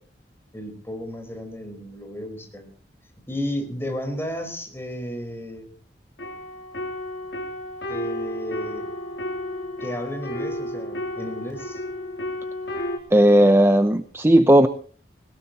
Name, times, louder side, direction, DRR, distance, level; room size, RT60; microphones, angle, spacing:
voice 1, 0.5-2.7 3.3-5.7 7.9-8.9 9.8-11.8, left 1 dB, 15° left, 5 dB, 4.5 m, -33 dB
sound 1, 6.2-13.0, left 1 dB, 85° left, 3.5 m, -32 dB
voice 2, 13.1-14.7, right 1 dB, 15° right, 9 dB, 0.7 m, -15 dB
21.0 x 19.5 x 3.0 m, 0.44 s
head